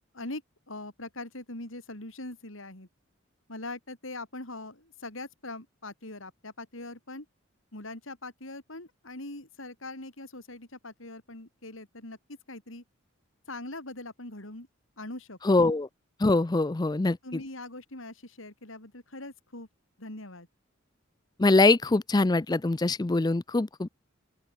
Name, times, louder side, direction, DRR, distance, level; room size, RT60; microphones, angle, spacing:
voice 1, 0.1-2.9 3.5-7.3 7.7-12.2 12.5-12.8 13.5-14.7 15.0-15.4 17.2-19.7 20.0-20.5, left 2 dB, 75° left, 4.7 m, -42 dB
voice 2, 15.4-15.9 16.2-17.2 21.4-23.9, left 2 dB, 20° left, 0.4 m, -23 dB
open air
head